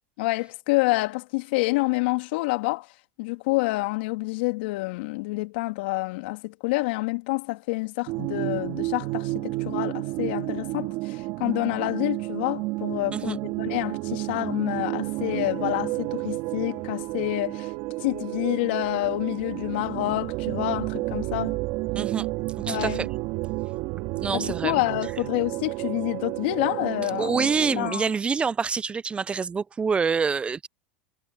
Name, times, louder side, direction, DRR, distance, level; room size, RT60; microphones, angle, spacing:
voice 1, 0.2-2.9 3.2-17.7 18.0-21.6 22.7-23.0 24.3-27.5 27.7-28.1, left 22 dB, 65° left, 2.6 m, -28 dB
sound 1, 8.1-27.9, right 22 dB, 55° right, 2.8 m, -31 dB
voice 2, 21.9-22.3 22.6-23.1 24.2-24.7 27.2-30.7, right 5 dB, 20° right, 0.6 m, -26 dB
hypercardioid pair, 105°, 6 cm